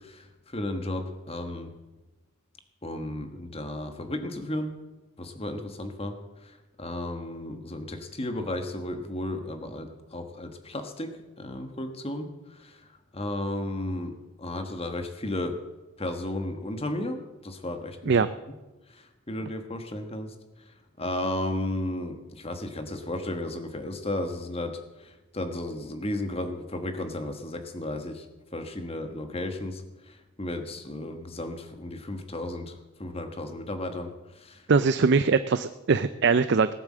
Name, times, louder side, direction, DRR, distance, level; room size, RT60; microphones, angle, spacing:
voice 1, 0.0-1.7 2.8-4.8 5.2-6.1 6.4-12.9 13.1-15.6 16.0-17.2 17.4-18.2 18.9-20.3 21.0-28.3 28.5-34.6, left 1 dB, 25° left, 7 dB, 1.3 m, -34 dB
voice 2, 34.7-36.7, right 4 dB, 50° right, 13 dB, 0.4 m, -22 dB
18.5 x 8.4 x 7.4 m, 1.1 s
head